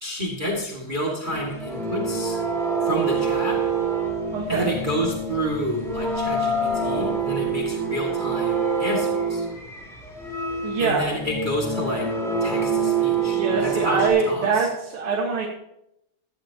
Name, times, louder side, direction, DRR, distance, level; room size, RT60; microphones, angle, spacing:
voice 1, 0.0-2.4 2.8-3.6 4.5-9.5 10.8-12.1 12.4-14.7, equal, 20° right, -1 dB, 2.2 m, -29 dB
sound 1, 1.2-14.1, right 4 dB, ahead, 3.0 m, -26 dB
voice 2, 4.3-4.8 10.6-11.2 13.2-15.5, right 4 dB, 90° right, -2 dB, 2.6 m, -24 dB
16.0 x 14.0 x 2.9 m, 0.81 s
omnidirectional pair, 2.3 m